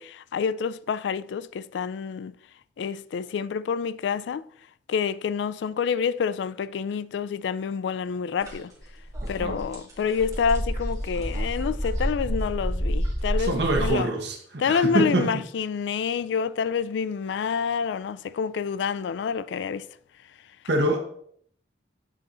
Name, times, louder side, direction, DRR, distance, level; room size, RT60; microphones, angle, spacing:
voice 1, 0.0-2.3 2.8-4.4 4.9-8.7 9.3-14.1 14.6-19.9, left 6 dB, 85° left, 0.3 m, -28 dB
sound 1, 8.4-8.5 8.9-13.9, equal, 20° right, 1.7 m, -29 dB
voice 2, 13.4-15.3 20.7-21.0, right 2 dB, 80° right, 1.1 m, -25 dB
7.5 x 3.8 x 4.2 m
head